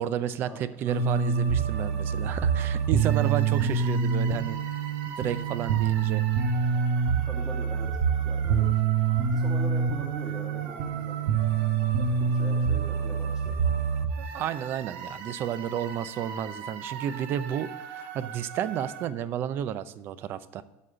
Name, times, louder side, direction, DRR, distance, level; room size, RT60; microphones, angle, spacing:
voice 1, 0.0-4.6 5.2-6.2 14.2-17.7 17.9-20.6, right 10 dB, 35° right, 15 dB, 0.6 m, -31 dB
sound 1, 0.9-19.1, right 6 dB, 75° right, 1.3 m, -27 dB
voice 2, 7.2-7.9 8.2-8.8 9.3-11.3 12.0-13.6, right 1 dB, 5° right, -3 dB, 2.5 m, -42 dB
12.5 x 4.2 x 7.6 m, 1.0 s
cardioid pair, 170°, 6 cm